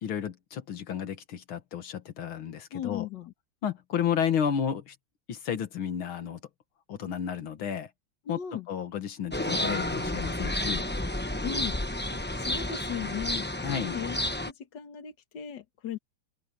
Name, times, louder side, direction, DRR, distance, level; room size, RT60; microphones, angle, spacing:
voice 1, 0.0-3.1 3.6-5.0 5.3-6.4 6.9-7.9 8.3-8.4 8.7-10.8 13.6-13.9, left 8 dB, 85° left, 2.3 m, -32 dB
voice 2, 2.7-3.3 8.3-8.7 11.4-11.8 12.4-14.2 14.5-16.0, left 8 dB, 60° left, 2.1 m, -37 dB
sound 1, 9.3-14.5, left 1 dB, 15° left, 0.4 m, -31 dB
open air
omnidirectional pair, 2.2 m